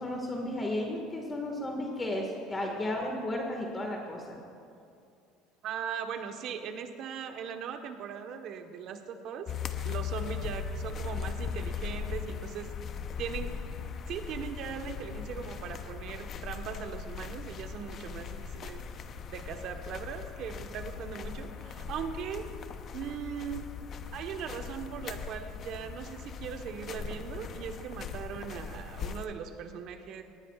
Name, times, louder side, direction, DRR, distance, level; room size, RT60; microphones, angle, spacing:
voice 1, 0.0-4.4, left 1 dB, 20° left, 0 dB, 1.8 m, -34 dB
voice 2, 5.6-9.5 9.8-12.7 13.2-13.6 14.1-18.8 19.3-22.5 22.9-23.7 24.1-30.2, right 7 dB, 55° right, 6 dB, 1.2 m, -39 dB
sound 1, 9.5-29.3, left 6 dB, 40° left, 0.7 m, -39 dB
19.0 x 18.5 x 2.5 m, 2.5 s
supercardioid pair, 115°, 0 cm